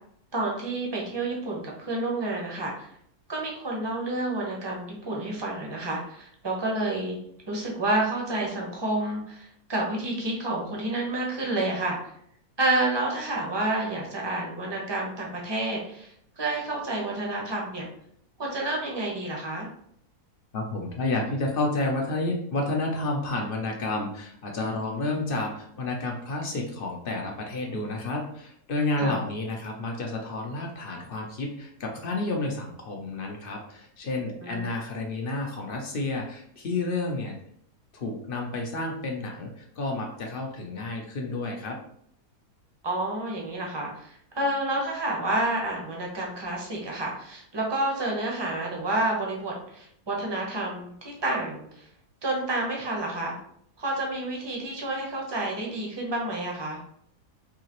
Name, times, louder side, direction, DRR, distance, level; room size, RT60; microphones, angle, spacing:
voice 1, 0.3-2.9 3.3-7.2 7.5-12.0 12.6-17.9 18.4-19.7 29.0-29.2 34.4-34.7 42.8-51.9 52.2-53.4 53.8-56.8, right 2 dB, 25° right, -1 dB, 0.6 m, -29 dB
voice 2, 20.5-37.3 37.9-41.8, left 2 dB, 60° left, 1 dB, 0.5 m, -30 dB
4.7 x 2.8 x 3.0 m, 0.68 s
omnidirectional pair, 1.7 m